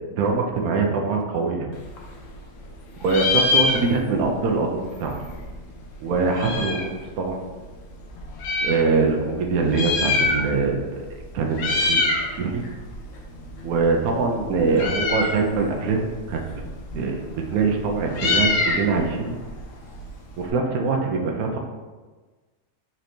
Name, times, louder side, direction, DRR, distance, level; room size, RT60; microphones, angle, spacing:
voice 1, 0.2-1.7 3.0-5.1 6.0-7.4 8.6-10.9 11.3-12.6 13.6-16.4 16.9-19.4 20.4-21.6, right 4 dB, 70° right, 2 dB, 0.9 m, -23 dB
Meow, 1.7-2.7 3.0-4.3 4.6-4.7 4.8-7.0 7.6-8.8 9.6-10.8 11.0-11.2 11.5-12.3 12.6-20.5, left 3 dB, 75° left, 0.7 m, -25 dB
4.2 x 3.2 x 2.7 m, 1.3 s
omnidirectional pair, 1.9 m